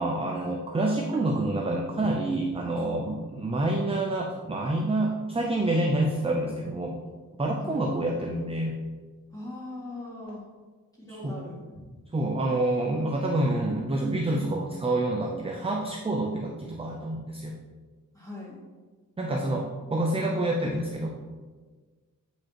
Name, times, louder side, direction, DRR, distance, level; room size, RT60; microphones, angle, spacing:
voice 1, 0.0-6.9 7.4-8.7 11.2-11.4 12.1-17.6 19.2-21.1, right 1 dB, 15° right, 0 dB, 0.5 m, -27 dB
voice 2, 7.6-7.9 9.3-10.4 11.0-11.6 18.1-18.6, left 2 dB, 10° left, -6 dB, 2.1 m, -40 dB
8.5 x 5.2 x 3.0 m, 1.4 s
wide cardioid pair, 155°, 33 cm